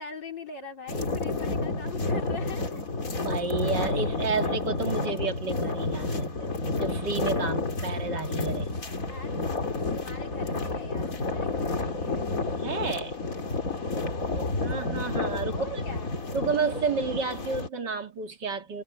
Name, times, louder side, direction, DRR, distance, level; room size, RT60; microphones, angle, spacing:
voice 1, 0.0-2.8 9.0-9.3 9.9-12.3 15.5-16.1, left 3 dB, 75° left, 4.8 m, -42 dB
sound 1, 0.9-17.7, left 3 dB, 45° left, 3.2 m, -30 dB
voice 2, 3.2-6.5 6.8-8.7 12.6-13.2 14.6-15.8 16.3-18.8, right 4 dB, 70° right, 3.1 m, -31 dB
omnidirectional pair, 2.0 m